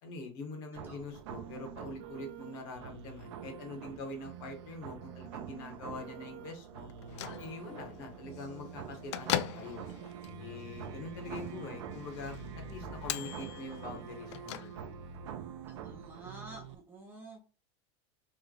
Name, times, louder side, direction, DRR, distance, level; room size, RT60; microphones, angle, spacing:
voice 1, 0.0-6.9 7.4-9.8 10.4-12.4 12.7-14.9, left 3 dB, 50° left, 3 dB, 1.1 m, -44 dB
sound 1, 0.7-16.7, right 9 dB, 85° right, 0.4 m, -45 dB
Bell / Microwave oven, 6.9-15.2, left 12 dB, 85° left, 0.4 m, -41 dB
voice 2, 15.7-17.4, right 2 dB, 15° right, 1 dB, 0.5 m, -49 dB
3.2 x 2.2 x 3.7 m, 0.33 s
supercardioid pair, 175°, 14 cm